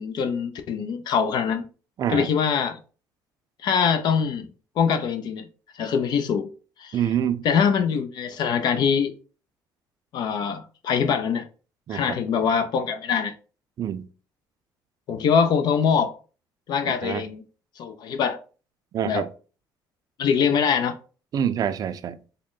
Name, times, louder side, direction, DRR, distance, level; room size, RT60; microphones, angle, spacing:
voice 1, 0.0-1.7 2.1-2.8 3.6-4.5 4.8-5.5 5.7-6.5 6.8-7.0 7.4-9.1 10.1-11.5 11.9-13.3 15.1-16.1 16.7-17.4 17.8-18.4 19.0-19.2 20.2-21.0, left 6 dB, 60° left, 0.5 m, -23 dB
voice 2, 2.0-2.3 6.9-7.4 11.9-12.2 13.8-14.1 16.9-17.2 18.9-19.3 21.3-22.2, right 9 dB, 50° right, 0.4 m, -26 dB
3.6 x 2.1 x 3.7 m
supercardioid pair, 80°, 8 cm